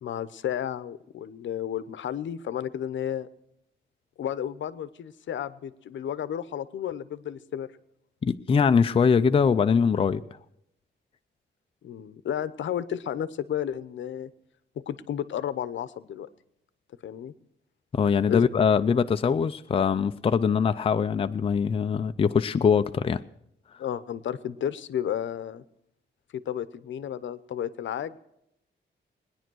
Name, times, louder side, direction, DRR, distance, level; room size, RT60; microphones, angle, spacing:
voice 1, 0.0-3.3 4.2-7.7 11.8-14.3 14.8-16.3 17.0-17.3 18.3-18.5 23.8-25.6 26.3-28.2, left 10 dB, 80° left, 0.8 m, -32 dB
voice 2, 8.2-10.2 17.9-23.2, left 6 dB, 30° left, 0.5 m, -22 dB
19.5 x 10.5 x 6.2 m
wide cardioid pair, 150°, 19 cm